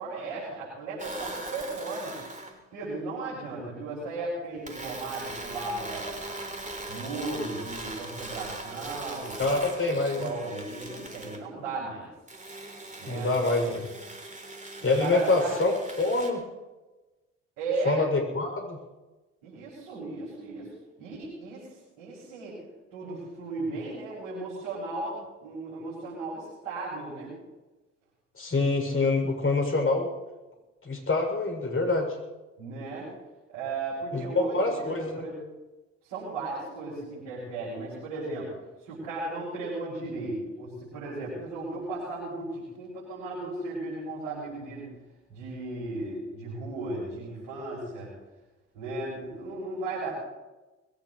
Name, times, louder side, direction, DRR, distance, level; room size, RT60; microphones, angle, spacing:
voice 1, 0.0-2.2 2.7-6.3 6.9-9.4 10.1-12.1 13.0-13.3 14.8-15.6 17.6-18.0 19.4-20.7 21.0-21.6 22.0-22.6 22.9-27.3 32.6-33.1 33.5-35.4 36.0-38.5 38.8-44.9 45.3-48.1 48.7-50.1, right 3 dB, 80° right, -8 dB, 7.2 m, -35 dB
sound 1, 1.0-2.6 4.7-11.4 12.3-16.3, right 2 dB, 20° right, 3.6 m, -40 dB
voice 2, 9.4-10.3 13.1-13.8 14.8-15.7 16.0-16.4 17.8-18.8 28.4-30.1 30.8-32.2 34.1-35.2, left 3 dB, 35° left, 2 dB, 7.1 m, -26 dB
21.5 x 18.0 x 3.3 m, 1.1 s
hypercardioid pair, 50°, 38 cm